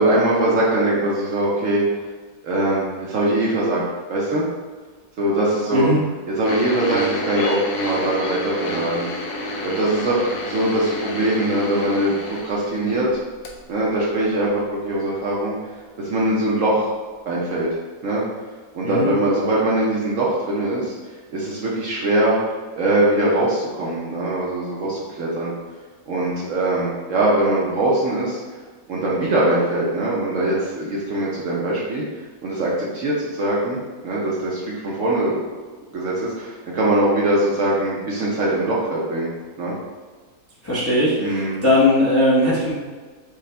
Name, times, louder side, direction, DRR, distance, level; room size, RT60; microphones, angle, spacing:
voice 1, 0.0-1.8 2.4-3.8 4.1-4.4 5.2-5.9 6.4-9.1 9.4-13.1 13.7-15.6 16.0-16.9 17.3-17.7 18.0-18.2 18.7-20.9 21.3-22.4 22.7-25.5 26.1-28.4 28.9-32.0 32.4-35.6 35.9-39.3 39.6-39.7 41.2-41.6, right 1 dB, 60° right, -5 dB, 0.9 m, -22 dB
sound 1, 6.4-13.1 13.4-13.6 14.3-14.4, left 1 dB, 70° left, 1.0 m, -29 dB
voice 2, 40.6-42.7, left 1 dB, 15° left, -8 dB, 0.6 m, -19 dB
4.9 x 2.4 x 3.3 m, 1.4 s
omnidirectional pair, 1.8 m